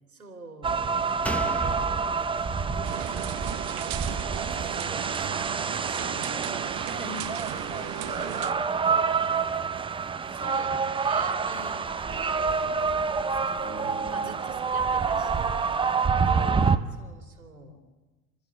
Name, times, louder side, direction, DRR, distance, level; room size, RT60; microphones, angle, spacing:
voice 1, 0.1-0.7 3.7-7.3 10.3-12.9 13.5-15.7 17.0-17.8, right 1 dB, 85° right, 5 dB, 2.9 m, -45 dB
sound 1, 0.6-16.8, right 5 dB, 10° right, 0.8 m, -27 dB
voice 2, 0.7-2.3 2.7-3.3 7.5-9.7 12.1-12.6 13.6-14.4 14.9-15.3 16.2-16.9, left 1 dB, 25° left, 0 dB, 3.6 m, -46 dB
Slam, 1.2-4.7 5.0-5.1, left 1 dB, 5° left, 1.2 m, -39 dB
sound 2, 2.8-8.5, right 18 dB, 40° right, 0.9 m, -37 dB
29.0 x 13.0 x 9.8 m, 1.2 s
figure-of-eight pair, 75°, 42 cm